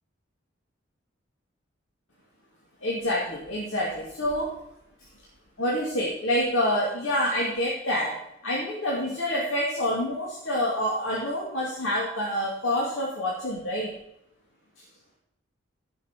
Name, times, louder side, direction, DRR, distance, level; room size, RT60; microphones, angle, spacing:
voice 1, 2.8-4.5 5.6-8.2 8.4-13.9, left 1 dB, 90° left, -4 dB, 2.5 m, -27 dB
15.5 x 6.0 x 5.9 m, 0.77 s
head